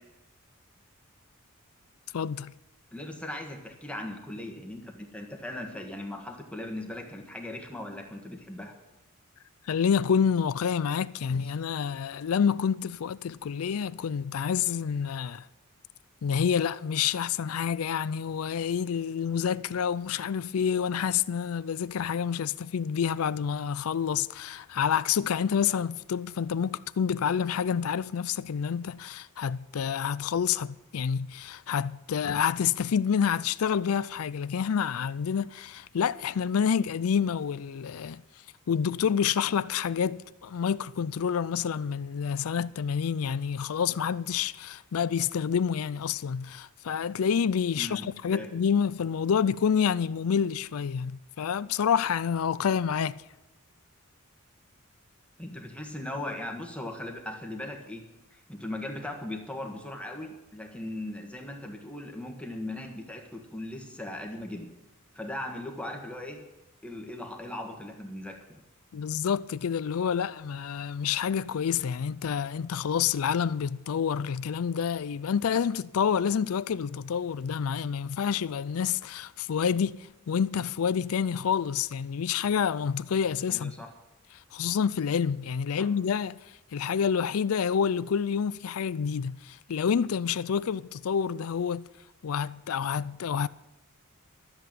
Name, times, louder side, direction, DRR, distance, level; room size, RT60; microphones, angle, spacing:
voice 1, 2.1-2.5 9.7-15.5 16.2-38.2 38.7-53.2 68.9-80.0 80.3-83.7 84.5-86.4 86.7-91.8 92.2-93.5, left 7 dB, 75° left, 0.4 m, -28 dB
voice 2, 2.9-8.8 47.7-48.5 55.4-58.1 58.3-64.7 65.1-66.4 66.8-68.6 83.5-83.9 85.7-85.9, left 1 dB, 5° left, 1.5 m, -38 dB
13.0 x 8.0 x 9.1 m
head